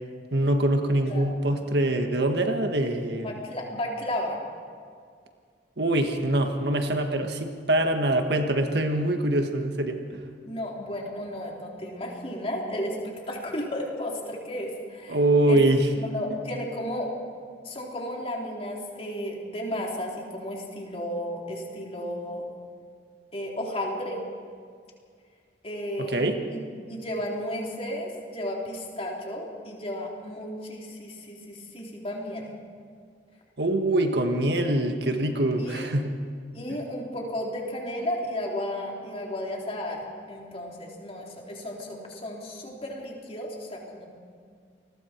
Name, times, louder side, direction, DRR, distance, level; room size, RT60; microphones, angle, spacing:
voice 1, 0.3-3.3 5.8-10.2 15.1-15.9 26.0-26.4 33.6-36.1 36.7-36.8, right 1 dB, 65° right, 5 dB, 1.7 m, -24 dB
voice 2, 3.2-4.4 10.4-15.2 15.5-15.6 16.0-17.1 17.6-22.5 23.3-24.2 25.6-26.6 26.9-32.5 35.6-35.9 36.5-44.1, left 1 dB, 35° left, -2 dB, 3.8 m, -33 dB
28.5 x 21.0 x 4.6 m, 2.1 s
head